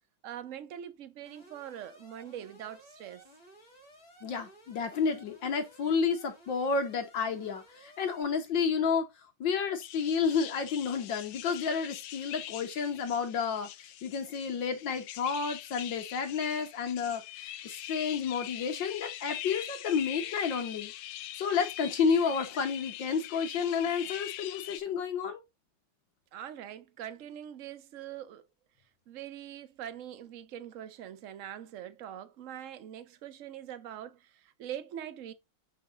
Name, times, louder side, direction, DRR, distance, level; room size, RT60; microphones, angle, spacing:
voice 1, 0.2-3.3 26.3-28.4 29.1-35.3, right 10 dB, 50° right, 1.0 m, -43 dB
Alarm, 1.3-8.2, right 1 dB, 30° left, 3.5 m, -56 dB
voice 2, 4.2-9.1 9.4-20.9 21.3-25.4, left 6 dB, 70° left, 1.8 m, -31 dB
sound 1, 9.8-24.8, left 13 dB, 85° left, 1.4 m, -43 dB
7.0 x 5.0 x 3.9 m
omnidirectional pair, 2.1 m